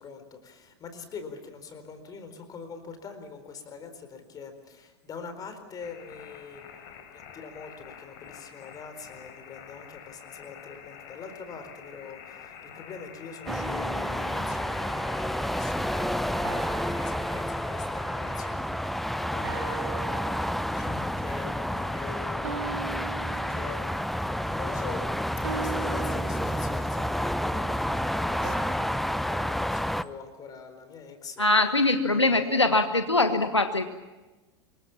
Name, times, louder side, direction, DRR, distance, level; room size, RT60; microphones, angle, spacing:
voice 1, 0.0-23.2 23.5-23.8 24.1-25.1 25.5-31.4 32.1-32.6, left 5 dB, 25° left, 8 dB, 4.4 m, -44 dB
sound 1, 5.8-18.5, left 8 dB, 45° left, 3.9 m, -47 dB
sound 2, 13.5-30.0, equal, ahead, 0.7 m, -30 dB
sound 3, 13.5-15.4 16.4-18.1 19.4-21.0 22.4-24.1 25.4-27.1 28.4-30.8, right 6 dB, 70° right, 3.4 m, -41 dB
voice 2, 31.4-33.8, left 2 dB, 85° left, 8 dB, 1.5 m, -22 dB
27.0 x 23.0 x 7.3 m, 1.2 s
figure-of-eight pair, 90°, 14 cm